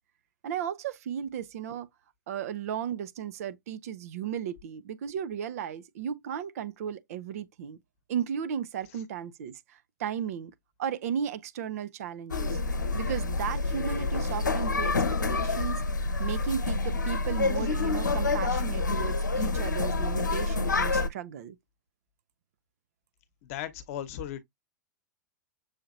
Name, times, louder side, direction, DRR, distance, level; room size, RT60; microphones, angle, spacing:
voice 1, 0.4-1.9 2.3-7.8 8.1-10.5 10.8-12.6 12.9-14.9 15.3-15.8 16.2-21.6, right 8 dB, 55° right, 0.6 m, -35 dB
sound 1, 12.3-21.1, left 3 dB, 80° left, 0.8 m, -28 dB
voice 2, 23.4-24.4, left 11 dB, 50° left, 1.0 m, -36 dB
6.5 x 2.7 x 2.6 m
figure-of-eight pair, 100°, 10 cm